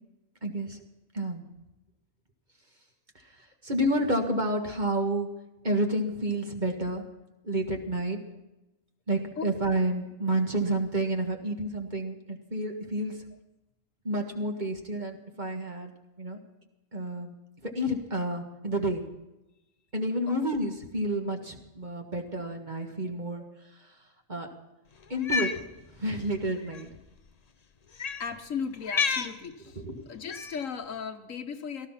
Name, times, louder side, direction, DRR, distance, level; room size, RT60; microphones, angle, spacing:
voice 1, 0.4-0.8 1.1-1.4 3.6-5.3 5.6-7.0 7.4-8.2 9.1-13.2 14.1-15.9 16.2-16.4 16.9-17.3 17.6-19.0 19.9-23.4 24.3-24.5 25.1-25.5 26.0-26.9 29.8-29.9, right 1 dB, 35° right, 3 dB, 1.9 m, -29 dB
Cat, 25.1-25.6 26.7-26.8 27.9-28.3 28.8-29.3 30.3-30.7, left 5 dB, 35° left, 0.7 m, -29 dB
voice 2, 28.2-31.9, left 6 dB, 65° left, 8 dB, 1.4 m, -36 dB
18.0 x 13.5 x 5.8 m, 0.98 s
omnidirectional pair, 1.5 m